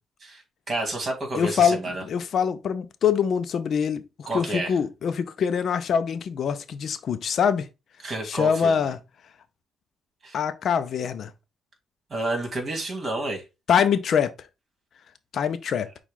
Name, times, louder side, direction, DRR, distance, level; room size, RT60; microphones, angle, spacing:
voice 1, 0.2-2.0 4.3-4.7 8.0-8.7 10.2-10.4 12.1-13.4, right 2 dB, 40° right, 2.0 m, -30 dB
voice 2, 1.3-1.8 2.1-7.7 8.2-9.0 10.3-11.3 13.7-14.3 15.3-15.9, left 7 dB, 60° left, 0.5 m, -24 dB
6.2 x 2.3 x 3.6 m
cardioid pair, 90°, 0 cm